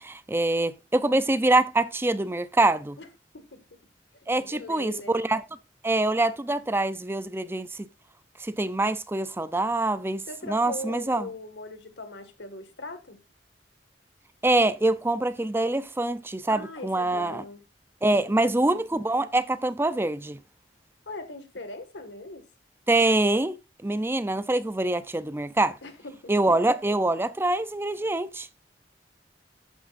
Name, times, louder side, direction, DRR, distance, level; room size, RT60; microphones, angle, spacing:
voice 1, 0.0-3.0 4.3-5.4 5.8-7.9 8.4-11.2 14.4-17.4 18.0-20.4 22.9-23.6 23.8-25.7 26.3-28.5, right 2 dB, 15° right, 0.5 m, -25 dB
voice 2, 3.3-3.8 4.1-5.2 10.3-13.2 16.5-17.6 18.1-18.7 21.1-22.5 25.8-26.3, left 2 dB, 80° left, 1.9 m, -40 dB
12.5 x 8.8 x 2.6 m
head